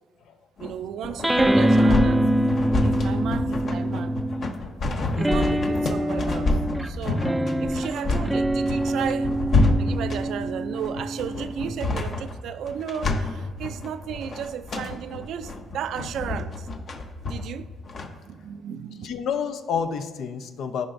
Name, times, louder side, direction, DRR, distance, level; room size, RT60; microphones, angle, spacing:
sound 1, 0.6-18.1, left 2 dB, 55° left, 0.9 m, -28 dB
voice 1, 0.6-2.3 2.8-4.2 5.2-7.2 7.6-9.4 9.8-16.7 17.3-17.7 18.3-19.1, right 8 dB, 75° right, 11 dB, 0.4 m, -34 dB
sound 2, 1.2-4.6 5.1-11.9, right 1 dB, 10° right, 0.4 m, -24 dB
voice 2, 19.0-20.9, left 7 dB, 75° left, 9 dB, 0.6 m, -29 dB
14.5 x 5.0 x 2.6 m, 1.5 s
cardioid pair, 90°, 0 cm